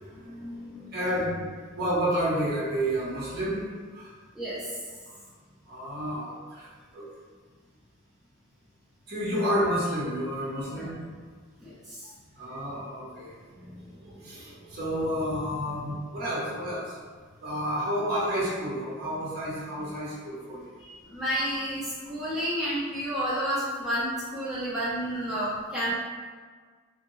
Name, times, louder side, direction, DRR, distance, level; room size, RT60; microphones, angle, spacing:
voice 1, 0.1-3.6 3.9-4.1 5.7-6.7 6.9-7.1 9.1-11.0 12.4-17.0 17.4-20.6, equal, 50° right, -7 dB, 0.8 m, -30 dB
voice 2, 4.3-4.7 10.7-10.8 11.6-12.1 20.8-26.0, equal, ahead, -11 dB, 0.5 m, -30 dB
2.6 x 2.1 x 2.9 m, 1.5 s
head